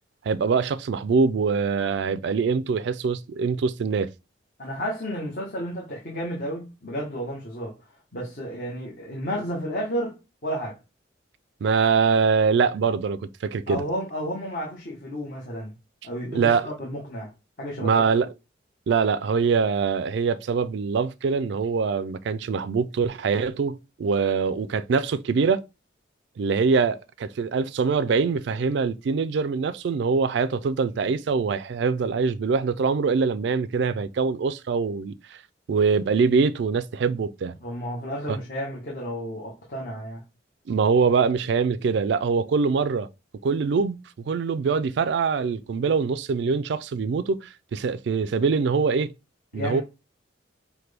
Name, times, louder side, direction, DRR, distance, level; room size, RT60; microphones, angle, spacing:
voice 1, 0.3-4.1 11.6-13.8 16.3-16.7 17.8-18.3 18.9-25.6 26.4-35.2 35.7-37.5 38.3-38.4 40.7-43.1 43.4-44.0 44.2-49.1 49.5-49.8, right 5 dB, 60° right, 0.3 m, -23 dB
voice 2, 4.6-7.7 8.1-10.8 13.7-15.7 16.0-17.3 17.6-17.9 37.6-40.2 49.5-49.8, equal, 45° left, 1.0 m, -32 dB
5.8 x 2.2 x 3.3 m
head